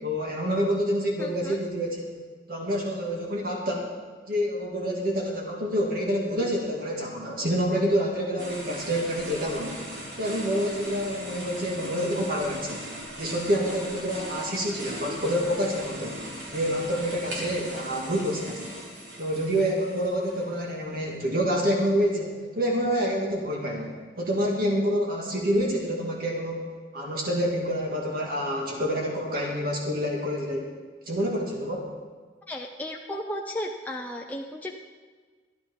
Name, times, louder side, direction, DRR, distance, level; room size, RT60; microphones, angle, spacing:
voice 1, 0.0-2.2 2.5-3.9 4.3-9.8 10.2-12.9 13.2-16.3 16.5-18.8 19.2-30.7 31.1-31.9, equal, 55° right, -1 dB, 2.0 m, -27 dB
voice 2, 1.2-1.6 32.5-34.8, left 1 dB, 10° left, 0 dB, 0.6 m, -34 dB
sound 1, 8.4-20.7, right 1 dB, 85° right, 3.6 m, -39 dB
13.0 x 11.0 x 5.3 m, 1.4 s
head